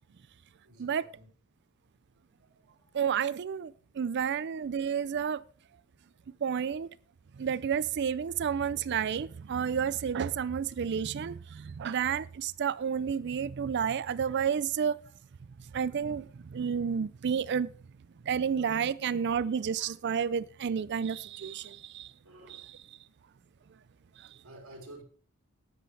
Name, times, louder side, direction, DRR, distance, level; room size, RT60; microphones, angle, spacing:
voice 1, 0.6-1.3 2.6-2.8 22.2-22.6 24.4-25.0, right 1 dB, 75° right, 3.4 m, -50 dB
voice 2, 2.9-5.4 6.4-6.9 7.4-15.0 15.7-17.7 18.2-22.1 22.5-22.8 24.2-24.3, right 7 dB, 50° right, 0.4 m, -31 dB
13.5 x 10.0 x 3.3 m
head